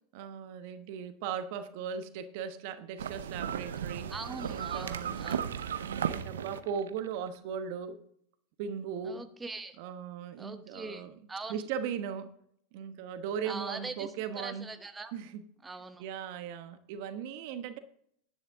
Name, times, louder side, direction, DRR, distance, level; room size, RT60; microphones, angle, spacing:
voice 1, 0.1-4.1 4.5-5.2 5.8-8.0 8.6-9.3 9.8-11.1 11.5-12.3 12.7-14.7 15.1-15.4 16.0-17.8, right 7 dB, 60° right, 10 dB, 1.1 m, -38 dB
sound 1, 3.0-7.2, right 8 dB, 85° right, 0.7 m, -35 dB
voice 2, 4.1-5.6 9.0-9.8 10.4-11.6 13.4-14.1 14.4-15.1 15.6-16.0, right 3 dB, 15° right, 8 dB, 1.0 m, -42 dB
10.5 x 9.9 x 3.6 m, 0.67 s
hypercardioid pair, 100°, 0 cm